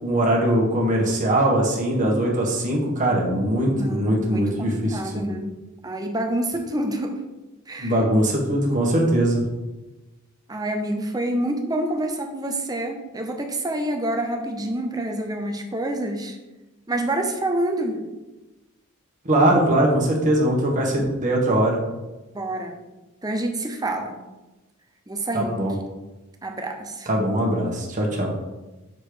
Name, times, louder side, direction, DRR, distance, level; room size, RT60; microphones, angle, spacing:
voice 1, 0.0-5.2 7.8-9.4 19.2-21.8 25.3-25.8 27.1-28.3, right 1 dB, 35° right, -2 dB, 1.5 m, -21 dB
voice 2, 3.7-5.5 5.8-7.2 7.7-8.0 10.5-16.4 16.9-18.1 22.3-22.8 23.2-24.2 25.1-25.5 26.4-27.1, right 1 dB, 20° right, 4 dB, 0.8 m, -27 dB
6.6 x 4.2 x 5.0 m, 1.1 s
head